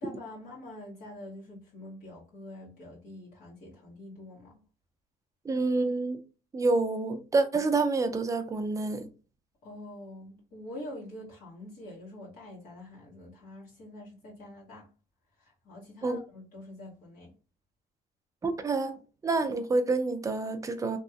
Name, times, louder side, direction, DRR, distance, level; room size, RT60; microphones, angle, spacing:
voice 1, 0.0-4.6 9.6-14.9 15.4-17.3, left 1 dB, 60° left, 1.2 m, -45 dB
voice 2, 5.4-6.2 6.5-9.1 16.0-16.2 18.4-21.0, right 3 dB, 20° right, 0.5 m, -28 dB
2.9 x 2.5 x 2.3 m
cardioid pair, 110°, 17 cm